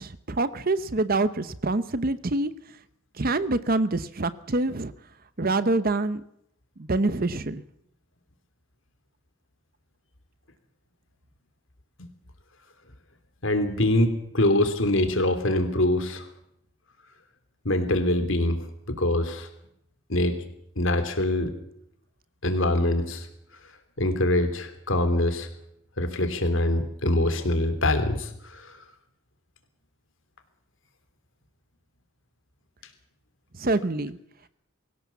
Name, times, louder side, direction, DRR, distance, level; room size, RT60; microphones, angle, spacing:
voice 1, 0.0-2.5 3.2-4.9 5.4-6.2 6.8-7.6 33.5-34.2, right 2 dB, 45° right, 14 dB, 0.9 m, -26 dB
voice 2, 13.4-16.3 17.6-18.6 18.9-19.5 20.1-20.4 20.8-21.5 22.4-23.3 24.0-25.5 26.0-28.8, left 1 dB, 60° left, 8 dB, 3.2 m, -24 dB
24.0 x 16.5 x 7.3 m, 0.75 s
head